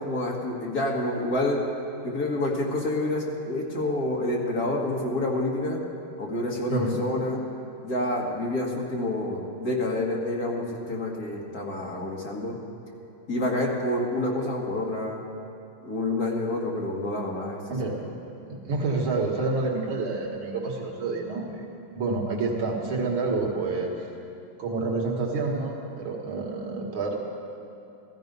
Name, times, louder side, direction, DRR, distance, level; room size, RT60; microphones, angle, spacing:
voice 1, 0.0-1.6 2.0-5.8 6.2-7.4 7.8-12.6 13.3-15.2 15.8-17.6, left 1 dB, 45° left, -2 dB, 2.3 m, -28 dB
voice 2, 18.5-21.7 22.0-23.9 24.6-27.2, right 3 dB, 85° right, -1 dB, 2.4 m, -28 dB
15.5 x 14.0 x 5.4 m, 2.7 s
omnidirectional pair, 2.2 m